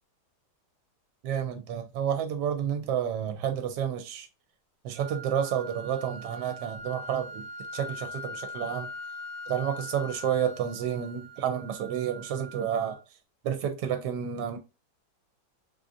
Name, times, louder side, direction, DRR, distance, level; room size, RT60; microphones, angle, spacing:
voice 1, 1.2-4.3 4.8-7.4 7.7-8.9 9.5-13.0 13.4-14.6, right 9 dB, 80° right, 1.2 m, -30 dB
sound 1, 5.0-13.0, left 1 dB, 65° right, 0.7 m, -42 dB
3.6 x 2.5 x 2.6 m
omnidirectional pair, 1.8 m